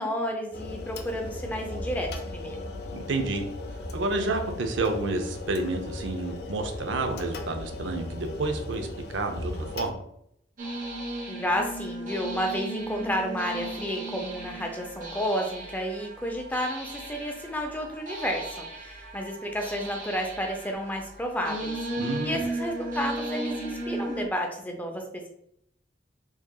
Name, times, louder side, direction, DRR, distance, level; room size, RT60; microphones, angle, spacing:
voice 1, 0.0-2.6 11.3-21.8 22.2-25.3, equal, 10° left, 2 dB, 0.5 m, -31 dB
sound 1, 0.5-9.9, left 2 dB, 55° left, 0.5 m, -37 dB
voice 2, 2.9-3.4 3.9-10.0 22.0-22.4, right 2 dB, 80° right, 5 dB, 0.6 m, -30 dB
sound 2, 10.6-24.3, right 2 dB, 45° right, 0.9 m, -36 dB
4.7 x 2.9 x 2.3 m, 0.72 s
head